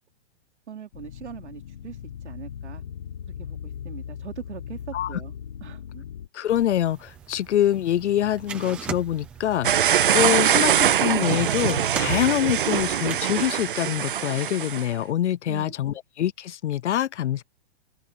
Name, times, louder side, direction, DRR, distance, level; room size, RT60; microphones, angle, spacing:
voice 1, 0.7-2.8 3.4-5.3 5.6-6.0 15.5-16.0, right 9 dB, 85° right, 3.1 m, -41 dB
sound 1, 0.9-6.3, left 8 dB, 35° left, 1.1 m, -38 dB
voice 2, 6.3-17.4, left 11 dB, 85° left, 0.6 m, -25 dB
sound 2, 6.5-13.2, right 7 dB, 5° right, 0.7 m, -40 dB
sound 3, 9.6-14.9, right 10 dB, 50° right, 0.5 m, -22 dB
open air
hypercardioid pair, 180°, 34 cm